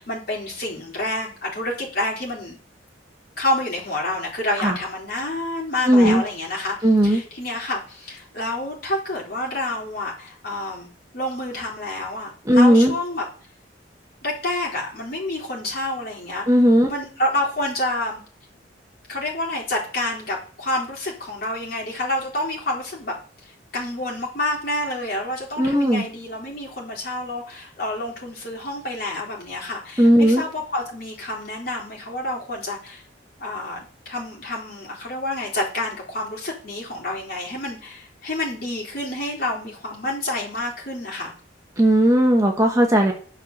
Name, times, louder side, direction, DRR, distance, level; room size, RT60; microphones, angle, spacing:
voice 1, 0.0-2.6 3.4-10.9 11.1-13.2 14.2-16.5 16.9-18.2 19.1-23.2 23.7-33.0 33.4-41.3, left 1 dB, 50° left, -3 dB, 3.9 m, -28 dB
voice 2, 5.8-6.2 6.8-7.2 12.5-12.9 16.5-16.9 25.6-26.0 30.0-30.4 41.8-43.1, equal, 15° right, 2 dB, 1.2 m, -16 dB
10.5 x 5.8 x 6.6 m, 0.42 s
head